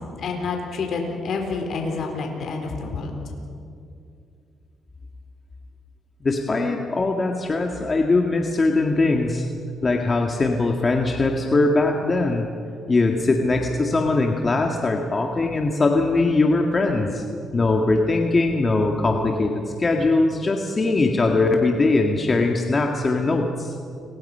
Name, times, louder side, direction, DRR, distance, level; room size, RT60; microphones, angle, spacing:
voice 1, 0.0-3.1, left 4 dB, 65° left, 2 dB, 4.2 m, -28 dB
voice 2, 6.2-9.5 9.8-12.5 12.9-17.2 17.5-23.8, left 3 dB, 30° left, 2 dB, 1.9 m, -21 dB
29.5 x 22.0 x 5.7 m, 2.5 s
cardioid pair, 90°, 0 cm